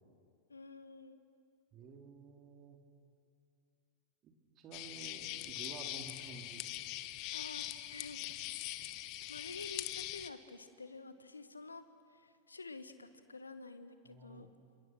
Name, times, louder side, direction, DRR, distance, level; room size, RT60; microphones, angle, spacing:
voice 1, 0.5-1.2 7.3-8.4 9.3-14.5, left 3 dB, 80° left, 11 dB, 1.4 m, -50 dB
voice 2, 1.7-2.8 4.2-6.7 14.0-14.5, right 5 dB, 35° right, 3 dB, 3.4 m, -52 dB
sound 1, 4.7-10.3, left 15 dB, 40° left, 1.0 m, -42 dB
29.0 x 27.0 x 6.1 m, 2.3 s
figure-of-eight pair, 90°, 0 cm